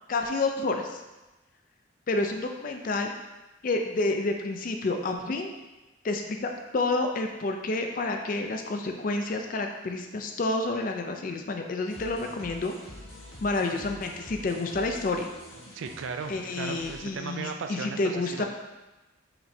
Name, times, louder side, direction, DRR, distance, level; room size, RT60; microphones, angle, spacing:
voice 1, 0.1-1.0 2.1-3.1 3.6-5.5 6.0-12.7 13.4-15.3 16.3-18.4, left 2 dB, 45° left, 4 dB, 0.4 m, -29 dB
sound 1, 11.9-17.0, equal, 70° left, 1.5 m, -46 dB
voice 2, 15.7-18.4, right 5 dB, 70° right, 5 dB, 0.4 m, -36 dB
5.7 x 3.1 x 2.7 m, 1.1 s
head